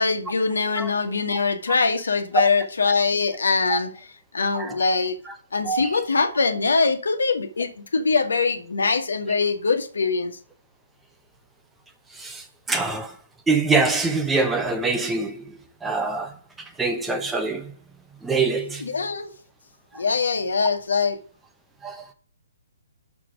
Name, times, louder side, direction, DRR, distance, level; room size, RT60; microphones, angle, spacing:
voice 1, 0.0-4.1 4.3-5.2 5.5-10.3 18.8-19.3 20.0-21.2, left 4 dB, 75° left, 1.4 m, -23 dB
voice 2, 12.2-13.1 13.5-16.3 16.8-17.7 18.2-18.8 21.8-22.1, right 3 dB, 10° right, 0.9 m, -24 dB
6.1 x 5.9 x 4.9 m
figure-of-eight pair, 130°, 0 cm